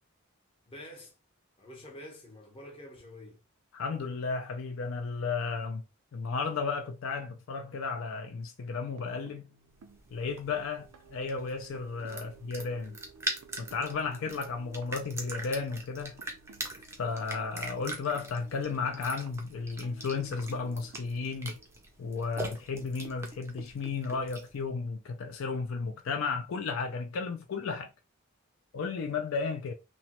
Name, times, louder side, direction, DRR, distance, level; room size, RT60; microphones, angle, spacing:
voice 1, 0.7-1.1 1.6-3.4, left 1 dB, 25° left, 0.7 m, -47 dB
voice 2, 3.7-5.8 6.1-9.5 10.1-13.0 13.6-16.2 17.0-21.5 22.0-27.9 28.7-29.7, left 4 dB, 65° left, 0.4 m, -34 dB
sound 1, 8.6-22.6 23.8-23.9 24.3-24.4, right 4 dB, 80° right, 0.4 m, -56 dB
sound 2, 9.8-24.6, right 2 dB, 10° right, 0.4 m, -42 dB
3.0 x 2.1 x 2.9 m
head